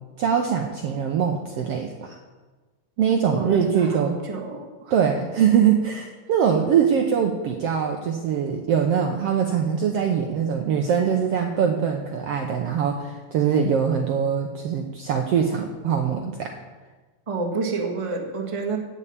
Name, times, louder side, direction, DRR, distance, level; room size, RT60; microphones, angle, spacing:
voice 1, 0.2-2.2 3.0-4.1 4.9-16.5, right 7 dB, 70° right, 3 dB, 1.6 m, -22 dB
voice 2, 3.3-5.0 17.3-18.8, right 4 dB, 15° right, 1 dB, 1.0 m, -29 dB
16.0 x 5.6 x 8.4 m, 1.3 s
omnidirectional pair, 3.6 m